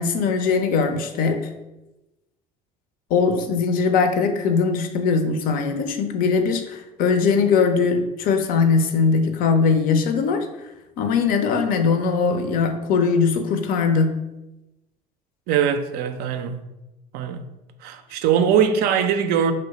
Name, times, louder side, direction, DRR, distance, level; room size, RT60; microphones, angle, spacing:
voice 1, 0.0-1.5 3.1-10.5 11.0-14.2, left 5 dB, 50° left, 0.5 m, -20 dB
voice 2, 15.5-16.6 17.1-17.4 17.8-19.5, right 8 dB, 55° right, 0.4 m, -21 dB
3.0 x 2.1 x 4.1 m
hypercardioid pair, 65°, 19 cm